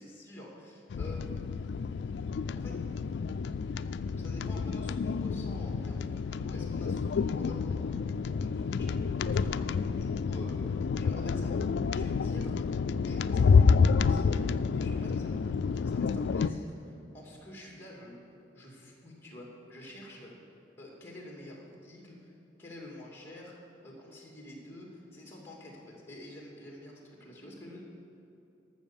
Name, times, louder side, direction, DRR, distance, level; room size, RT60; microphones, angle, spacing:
voice 1, 0.0-1.4 2.5-2.8 4.2-7.9 8.3-9.1 9.3-10.6 11.0-11.5 11.9-12.6 13.0-18.2 18.5-20.3 20.8-22.3 22.6-23.6 23.8-27.8, left 1 dB, 15° left, -1 dB, 2.3 m, -48 dB
sound 1, 0.9-16.5, left 5 dB, 70° left, 0.3 m, -29 dB
12.5 x 6.9 x 7.1 m, 3.0 s
head